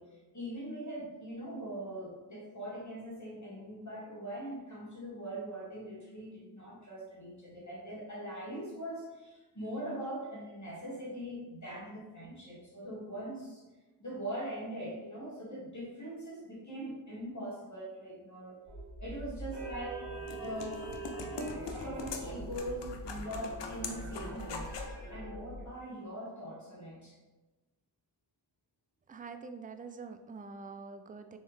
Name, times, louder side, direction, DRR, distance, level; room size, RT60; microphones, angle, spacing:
voice 1, 0.0-13.6 14.0-18.6 19.0-20.1 20.3-20.9 21.3-24.7 25.1-27.2, right 1 dB, 40° left, -6 dB, 1.4 m, -42 dB
sound 1, 18.7-25.7, right 2 dB, 65° right, 1.4 m, -43 dB
sound 2, 19.7-25.0, left 4 dB, 80° left, 0.6 m, -43 dB
voice 2, 29.1-31.4, right 4 dB, 20° right, 8 dB, 0.3 m, -45 dB
3.5 x 3.1 x 3.2 m, 1.2 s
cardioid pair, 45°, 42 cm